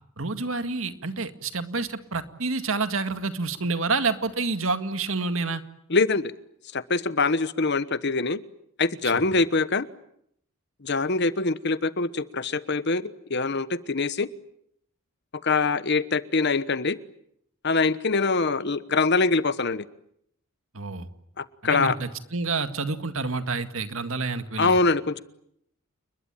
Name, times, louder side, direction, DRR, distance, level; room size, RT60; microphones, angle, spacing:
voice 1, 0.2-5.6 9.1-9.2 20.7-21.1 21.6-24.8, right 3 dB, 70° right, 9 dB, 2.0 m, -28 dB
voice 2, 5.9-6.3 6.7-8.4 8.8-9.9 10.8-14.3 15.4-17.0 17.6-19.8 21.4-22.0 24.6-25.2, left 3 dB, 50° left, 15 dB, 1.1 m, -24 dB
30.0 x 21.5 x 9.1 m, 0.73 s
head